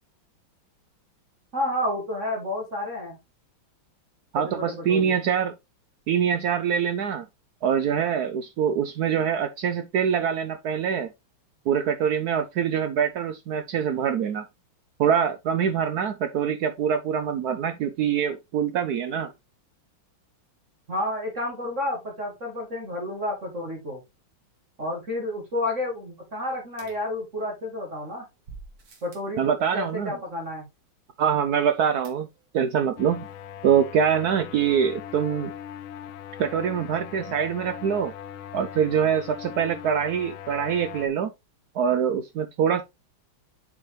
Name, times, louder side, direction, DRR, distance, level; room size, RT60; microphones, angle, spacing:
voice 1, 1.5-3.2 4.3-5.2 20.9-24.0 24.8-28.2 29.0-30.7, left 1 dB, 40° right, 2.0 m, -30 dB
voice 2, 4.3-5.5 6.1-7.3 7.6-11.1 11.7-14.5 15.0-19.3 29.4-30.2 31.2-32.3 32.5-33.3 33.6-35.5 36.4-38.1 38.5-41.3 41.7-42.8, right 8 dB, 75° right, 0.8 m, -24 dB
sound 1, 26.8-27.8 28.4-29.4 32.0-32.6 32.9-33.0 33.3-33.4, right 4 dB, 55° right, 2.2 m, -48 dB
sound 2, 33.0-41.1, left 9 dB, 80° left, 1.4 m, -40 dB
7.5 x 4.5 x 3.1 m
omnidirectional pair, 2.3 m